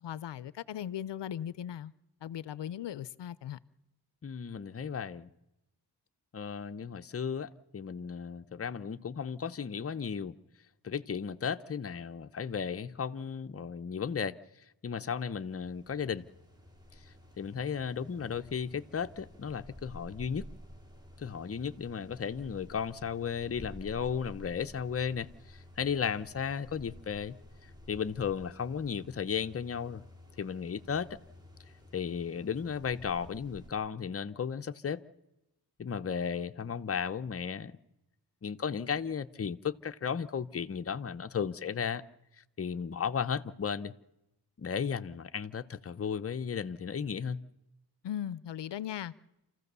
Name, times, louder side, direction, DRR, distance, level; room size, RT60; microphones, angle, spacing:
voice 1, 0.0-1.9 2.2-3.6 48.0-49.1, left 10 dB, 80° left, 0.6 m, -38 dB
voice 2, 4.2-5.3 6.3-10.4 10.8-14.4 14.8-16.3 17.4-20.5 21.2-27.4 27.9-30.0 30.4-31.2 31.9-35.0 35.8-37.8 38.4-42.0 42.6-43.9 44.6-47.4, left 7 dB, 35° left, 0.7 m, -35 dB
sound 1, 15.4-33.7, left 1 dB, 10° right, 3.7 m, -52 dB
28.0 x 15.0 x 6.8 m
wide cardioid pair, 95°, 42 cm